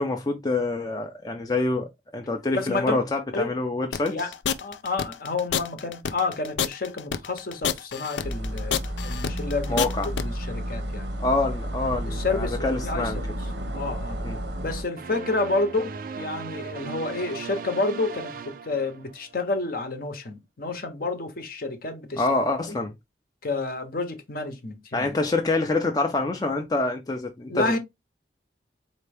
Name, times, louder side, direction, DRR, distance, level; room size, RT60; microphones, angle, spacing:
voice 1, 0.0-4.2 9.7-10.1 11.2-13.2 14.2-14.4 22.2-22.9 24.9-27.7, left 2 dB, 20° left, 0.5 m, -26 dB
voice 2, 2.5-3.0 3.3-3.6 4.1-4.3 4.6-8.8 9.0-9.8 10.1-11.1 12.1-13.2 13.7-14.2 14.6-22.3 22.7-22.8 23.4-25.2 27.5-27.8, left 3 dB, 55° left, 0.8 m, -29 dB
sound 1, 3.9-10.2, left 8 dB, 85° left, 0.4 m, -28 dB
sound 2, 8.2-14.8, equal, 90° right, 0.9 m, -31 dB
sound 3, 15.0-19.4, right 5 dB, 50° right, 0.4 m, -38 dB
4.2 x 2.8 x 3.3 m
head